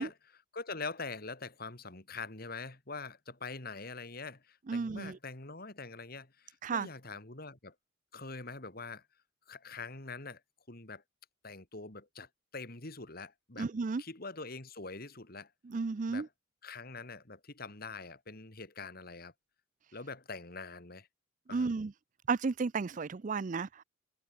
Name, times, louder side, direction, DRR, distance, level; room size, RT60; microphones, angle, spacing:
voice 1, 0.0-7.7 8.1-9.0 9.5-10.4 10.7-11.0 11.4-13.7 14.0-15.5 16.1-16.3 16.6-19.3 19.9-21.1 21.5-21.7, left 4 dB, 50° left, 2.8 m, -44 dB
voice 2, 4.7-5.2 6.6-6.9 13.6-14.0 15.7-16.3 21.5-21.9 22.3-23.8, right 4 dB, 40° right, 0.4 m, -33 dB
head